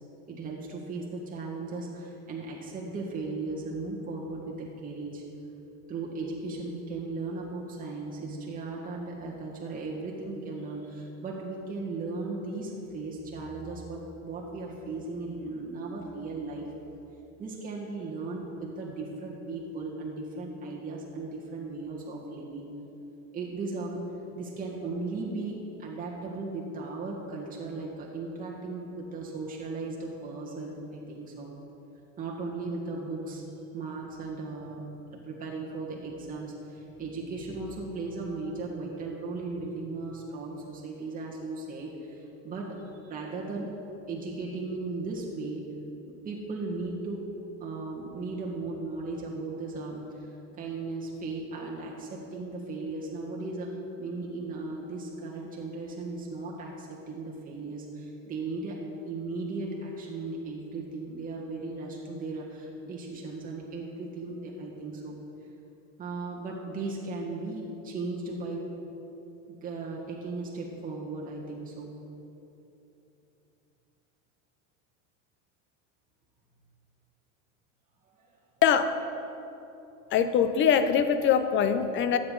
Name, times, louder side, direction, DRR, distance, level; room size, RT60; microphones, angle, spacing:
voice 1, 0.3-5.2 5.9-16.7 17.4-22.7 23.3-24.0 24.3-31.5 32.2-33.4 33.7-42.7 43.0-43.7 44.1-45.6 46.2-47.2 47.6-58.8 59.1-65.1 66.0-68.7 69.5-71.9 78.2-78.3, right 3 dB, 20° right, -3 dB, 1.5 m, -36 dB
voice 2, 80.1-82.2, left 8 dB, 30° left, 10 dB, 0.6 m, -23 dB
12.5 x 8.0 x 3.9 m, 2.9 s
supercardioid pair, 125°, 39 cm